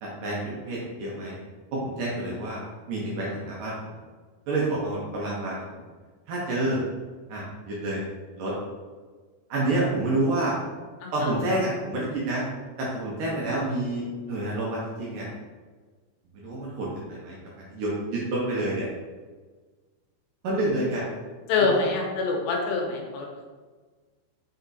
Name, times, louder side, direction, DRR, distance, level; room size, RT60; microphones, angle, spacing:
voice 1, 0.0-1.4 1.7-2.6 2.9-3.7 4.5-5.8 6.3-6.8 7.3-8.0 8.4-8.5 9.5-10.5 11.1-12.4 12.8-15.3 16.3-17.4 17.7-18.9 20.4-21.1, right 2 dB, 70° right, -5 dB, 2.2 m, -28 dB
voice 2, 11.0-11.3 21.5-23.5, left 3 dB, 85° left, 0 dB, 3.1 m, -26 dB
6.8 x 3.5 x 4.1 m, 1.4 s
omnidirectional pair, 4.9 m